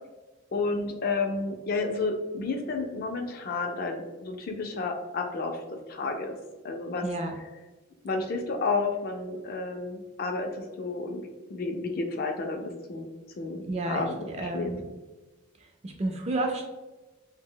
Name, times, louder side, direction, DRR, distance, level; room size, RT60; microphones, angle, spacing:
voice 1, 0.5-5.6 5.9-6.4 6.6-7.1 8.0-11.2 11.5-13.1 13.4-14.7, left 3 dB, 45° left, 3 dB, 0.3 m, -31 dB
voice 2, 7.0-7.3 13.6-14.9 15.8-16.6, right 2 dB, 30° right, 2 dB, 0.4 m, -31 dB
2.7 x 2.0 x 3.7 m, 1.1 s
head